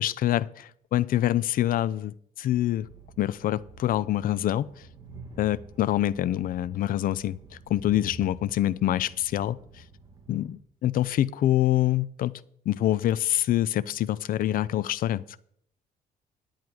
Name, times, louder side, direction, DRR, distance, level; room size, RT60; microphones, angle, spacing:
voice 1, 0.0-2.9 3.2-4.7 5.4-7.4 7.7-9.6 10.3-12.3 12.7-15.2, left 13 dB, 60° left, 19 dB, 0.5 m, -25 dB
Train, 2.7-10.5, right 2 dB, 25° right, 2.2 m, -48 dB
10.5 x 9.3 x 4.7 m, 0.66 s
cardioid pair, 130°, 16 cm